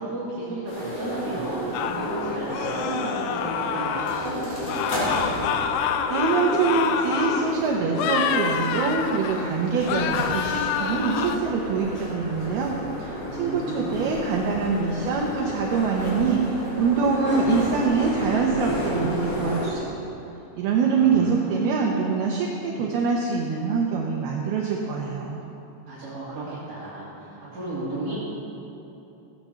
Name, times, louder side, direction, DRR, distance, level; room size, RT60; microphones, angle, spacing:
voice 1, 0.0-5.1 13.3-14.1 20.8-21.6 25.9-28.2, right 2 dB, 40° right, -11 dB, 3.0 m, -34 dB
sound 1, 0.7-19.7, equal, 45° left, 4.0 m, -32 dB
sound 2, 1.7-4.4 4.7-7.5 7.9-9.5 9.8-11.4, left 8 dB, 80° left, 3.0 m, -27 dB
voice 2, 6.1-12.7 13.0-19.9 20.5-25.4, right 5 dB, 75° right, -1 dB, 2.5 m, -24 dB
15.5 x 8.7 x 7.1 m, 3.0 s
omnidirectional pair, 5.4 m